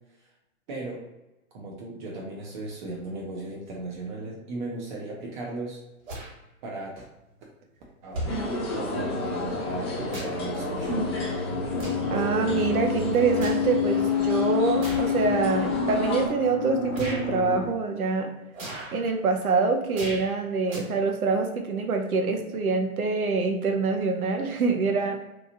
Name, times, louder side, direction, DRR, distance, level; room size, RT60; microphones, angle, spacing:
voice 1, 0.7-1.0 1.5-5.8 6.6-7.1 8.0-8.2 8.5-10.9, right 2 dB, 35° right, -2 dB, 0.6 m, -36 dB
sound 1, 6.0-6.3 7.4-7.5 8.1-8.4 9.6-10.5 10.9-11.1 11.7-12.1 12.6-13.7 14.8-15.1 15.8-15.9 16.9-17.2 18.5-19.0 19.9-20.3 20.6-20.8, right 1 dB, 65° right, 1.5 m, -37 dB
sound 2, 8.3-17.7, left 7 dB, 60° left, 0.7 m, -29 dB
sound 3, 8.3-16.3, equal, 20° left, 0.3 m, -32 dB
voice 2, 12.1-18.3 18.9-25.2, right 4 dB, 85° right, 5 dB, 0.6 m, -25 dB
2.9 x 2.3 x 2.6 m, 0.98 s
hypercardioid pair, 120°, 43 cm